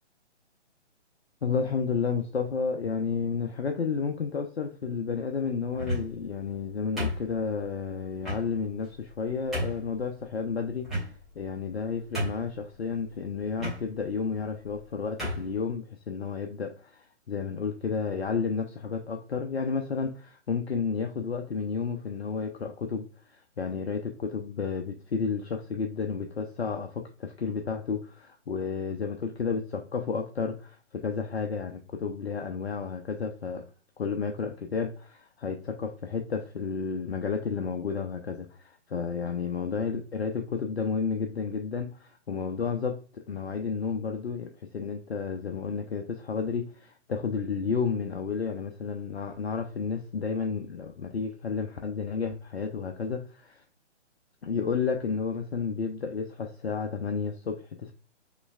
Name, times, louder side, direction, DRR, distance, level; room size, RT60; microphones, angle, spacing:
voice 1, 1.4-10.9 11.4-33.6 34.0-53.6 54.4-57.9, left 5 dB, 60° left, 5 dB, 0.6 m, -31 dB
sound 1, 5.7-6.3 7.0-7.6 8.2-8.4 9.0-9.1 9.5-9.9 10.8-11.4 11.8-11.9 12.1-12.6 13.6-13.8 14.6-14.8 15.2-15.5, left 1 dB, ahead, 1.0 m, -32 dB
6.1 x 3.2 x 2.2 m, 0.41 s
figure-of-eight pair, 135°, 35 cm